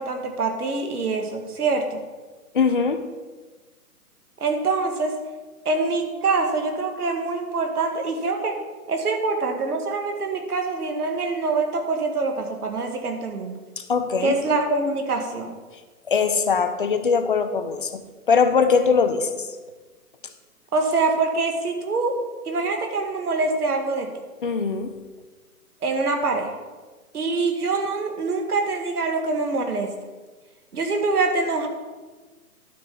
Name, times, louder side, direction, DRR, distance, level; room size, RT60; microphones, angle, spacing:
voice 1, 0.0-2.0 4.4-5.2 5.7-8.6 8.9-13.6 14.2-15.6 20.7-22.2 22.4-24.2 25.8-26.5 27.1-29.9 30.7-31.7, right 3 dB, 70° right, 4 dB, 1.9 m, -24 dB
voice 2, 2.5-3.0 13.8-14.4 16.1-19.5 24.4-25.0, left 5 dB, 35° left, 9 dB, 0.6 m, -21 dB
12.0 x 4.9 x 5.5 m, 1.3 s
hypercardioid pair, 160°, 46 cm